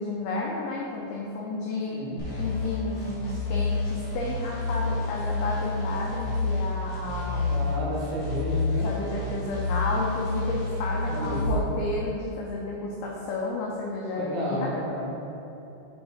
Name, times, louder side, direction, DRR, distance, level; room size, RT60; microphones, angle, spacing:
voice 1, 0.0-2.1 2.4-7.7 8.8-14.6, left 2 dB, 80° left, -3 dB, 2.3 m, -32 dB
sound 1, 2.2-11.6, left 3 dB, 55° left, 2.8 m, -29 dB
voice 2, 7.5-8.9 11.1-11.4 14.2-15.2, equal, 80° right, -5 dB, 1.7 m, -32 dB
7.8 x 5.0 x 3.6 m, 3.0 s
omnidirectional pair, 5.2 m